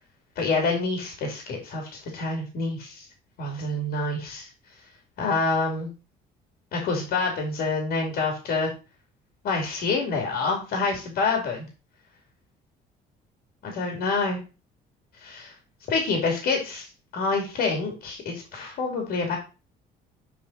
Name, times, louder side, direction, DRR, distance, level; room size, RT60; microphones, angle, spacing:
voice 1, 0.4-2.9 3.4-4.5 5.2-5.9 6.7-8.7 9.4-11.7 13.6-14.4 15.2-15.5 15.9-16.9 17.1-19.4, left 3 dB, 65° left, 2 dB, 2.7 m, -27 dB
7.0 x 4.7 x 5.5 m, 0.32 s
cardioid pair, 110°, 17 cm